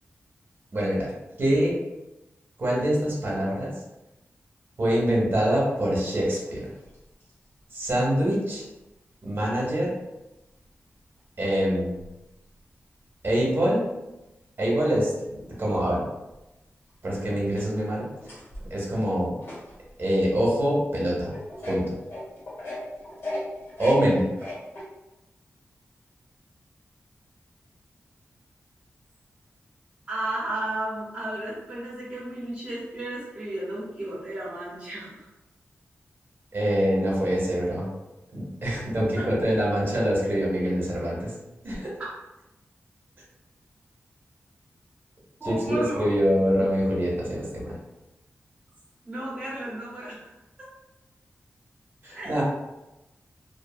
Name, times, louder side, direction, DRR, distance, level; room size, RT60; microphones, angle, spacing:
voice 1, 0.7-1.1 1.4-1.7 2.6-3.7 4.8-6.7 7.7-8.6 9.2-9.9 11.4-12.0 13.2-13.8 14.6-15.3 15.6-16.0 17.0-18.1 18.7-19.3 20.0-21.3 21.7-21.9 23.8-24.3 36.5-37.9 38.3-41.3 41.6-41.9 45.5-47.8 52.0-52.4, equal, 50° right, -4 dB, 1.0 m, -24 dB
sound 1, 6.0-7.3 7.9-8.0 10.0-10.1 11.2-11.3 11.9-12.1 15.4-15.5 16.3-16.4 16.9-17.0 17.4-20.0 20.6-20.7 21.3-24.8, left 1 dB, 65° left, 1.3 m, -38 dB
voice 2, 30.1-35.3 39.1-39.3 45.4-46.0 49.0-50.3 52.2-52.4, right 1 dB, 25° right, -9 dB, 1.0 m, -33 dB
2.6 x 2.5 x 2.4 m, 0.97 s
wide cardioid pair, 105°, 5 cm